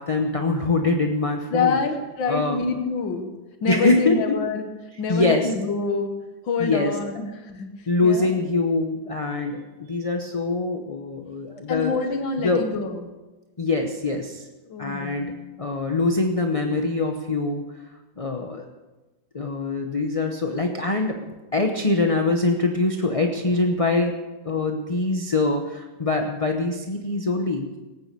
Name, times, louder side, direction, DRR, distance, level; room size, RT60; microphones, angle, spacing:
voice 1, 0.0-1.8 2.3-2.6 3.7-4.4 5.1-5.5 6.6-6.9 7.9-11.9 12.4-12.7 13.6-14.5 14.8-17.7 18.2-18.6 19.3-24.1 24.4-27.7, left 3 dB, 30° left, 3 dB, 0.6 m, -24 dB
voice 2, 1.5-3.3 3.6-4.7 5.0-6.1 6.4-7.7 8.0-8.3 11.7-13.0 14.7-15.4, left 4 dB, 80° left, 5 dB, 2.0 m, -26 dB
18.0 x 9.4 x 6.7 m, 1.2 s
omnidirectional pair, 2.0 m